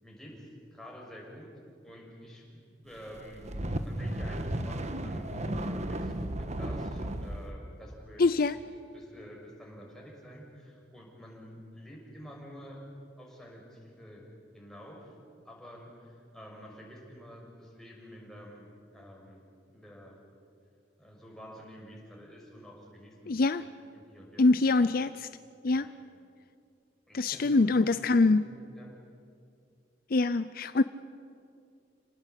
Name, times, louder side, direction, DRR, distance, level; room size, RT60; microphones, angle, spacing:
voice 1, 0.0-1.5 1.8-8.4 8.9-12.8 13.2-14.2 14.5-15.2 15.4-20.2 21.0-24.9 25.7-25.9 27.1-28.9, equal, 5° left, 6.2 m, -49 dB
sound 1, 3.2-7.4, right 1 dB, 40° right, 1.4 m, -34 dB
voice 2, 8.2-8.6 23.3-23.6 24.4-25.3 25.6-25.9 27.1-28.4 30.1-30.8, left 3 dB, 55° left, 0.6 m, -24 dB
29.5 x 19.0 x 8.3 m
head